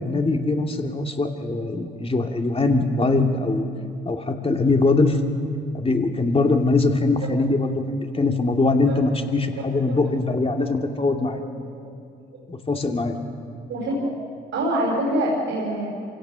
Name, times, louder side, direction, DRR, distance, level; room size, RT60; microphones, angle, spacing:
voice 1, 0.0-3.7 4.1-5.2 5.7-11.4 12.5-13.2, left 3 dB, 30° left, 4 dB, 2.5 m, -22 dB
voice 2, 9.5-10.0 10.6-10.7 10.9-11.4 13.7-14.1 14.5-15.9, right 1 dB, 70° right, -3 dB, 4.9 m, -26 dB
27.0 x 17.0 x 6.3 m, 2.3 s
supercardioid pair, 55°, 21 cm